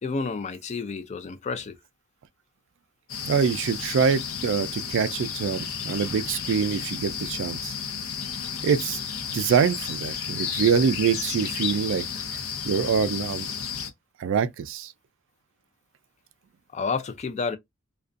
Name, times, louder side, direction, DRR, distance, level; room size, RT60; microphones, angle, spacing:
voice 1, 0.0-1.8 16.7-17.6, left 4 dB, 35° left, 0.3 m, -30 dB
sound 1, 3.1-13.9, left 7 dB, 80° left, 0.6 m, -32 dB
voice 2, 3.2-7.7 8.6-9.0 9.3-12.0 12.6-13.5 14.2-14.9, right 6 dB, 65° right, 0.3 m, -25 dB
2.4 x 2.2 x 2.4 m
head